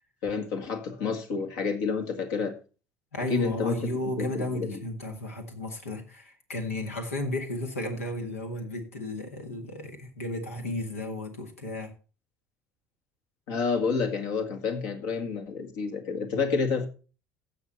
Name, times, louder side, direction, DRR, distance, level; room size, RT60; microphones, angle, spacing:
voice 1, 0.2-2.5 3.3-3.9 4.2-4.8 13.5-16.9, left 5 dB, 65° left, 2.0 m, -29 dB
voice 2, 3.1-11.9, left 1 dB, 85° left, 2.0 m, -33 dB
15.5 x 6.2 x 4.2 m
figure-of-eight pair, 65°, 8 cm